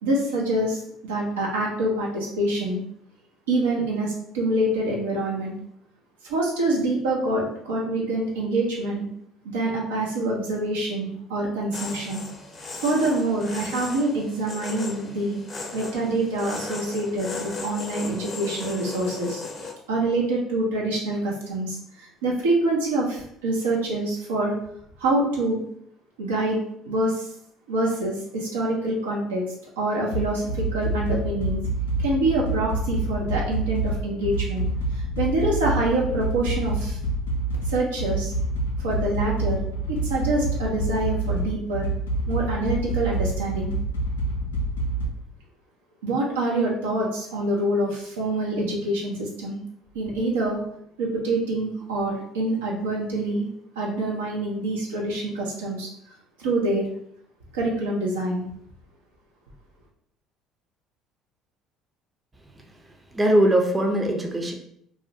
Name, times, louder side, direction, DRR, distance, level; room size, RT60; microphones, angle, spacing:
voice 1, 0.0-2.8 3.5-5.5 6.2-9.1 9.4-12.2 12.8-15.4 15.7-19.4 19.9-24.5 25.0-25.6 26.2-26.6 26.8-27.3 27.7-29.4 29.8-31.6 32.0-34.7 35.2-37.0 37.7-38.3 38.8-39.6 39.9-41.9 42.3-43.7 46.0-49.6 49.9-50.6 51.0-53.5 53.8-55.9 56.4-56.8 57.5-58.5, right 2 dB, 80° right, -2 dB, 0.5 m, -26 dB
sound 1, 11.7-19.7, left 3 dB, 35° left, 0.6 m, -36 dB
sound 2, 30.1-45.1, right 2 dB, 90° left, 0.3 m, -27 dB
voice 2, 63.1-64.5, right 1 dB, 20° right, 2 dB, 0.5 m, -20 dB
2.4 x 2.1 x 2.7 m, 0.70 s
hypercardioid pair, 60°, 0 cm